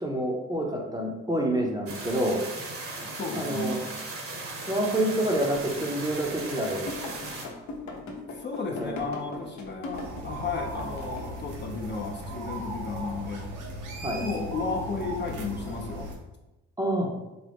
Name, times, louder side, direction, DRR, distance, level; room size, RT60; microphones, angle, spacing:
voice 1, 0.0-2.4 3.3-3.8 4.7-6.8 8.8-8.9 14.0-14.2 16.8-17.1, right 1 dB, 15° right, 0 dB, 0.6 m, -27 dB
sound 1, 1.9-7.5, right 3 dB, 45° right, 0.8 m, -37 dB
voice 2, 2.9-3.8 8.3-13.5 14.2-16.1, left 4 dB, 35° left, 1 dB, 0.5 m, -33 dB
sound 2, 6.9-10.3 10.8-10.9 11.2-11.4, left 2 dB, 70° left, 0.7 m, -38 dB
sound 3, 9.9-16.2, right 1 dB, 85° right, 0.7 m, -37 dB
3.8 x 2.2 x 3.4 m, 1.0 s
cardioid pair, 90°, 30 cm